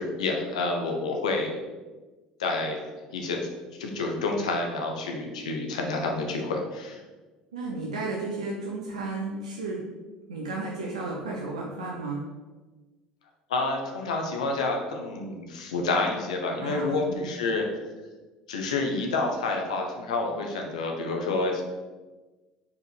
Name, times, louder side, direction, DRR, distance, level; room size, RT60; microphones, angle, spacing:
voice 1, 0.0-1.5 2.4-3.4 3.8-7.0 13.5-17.6 18.5-21.6, left 3 dB, 80° left, 2 dB, 0.9 m, -29 dB
voice 2, 7.5-9.8 10.3-12.2 16.6-17.0 17.2-17.3, right 3 dB, 85° right, -3 dB, 0.9 m, -33 dB
5.3 x 5.0 x 4.8 m, 1.2 s
hypercardioid pair, 65°, 4 cm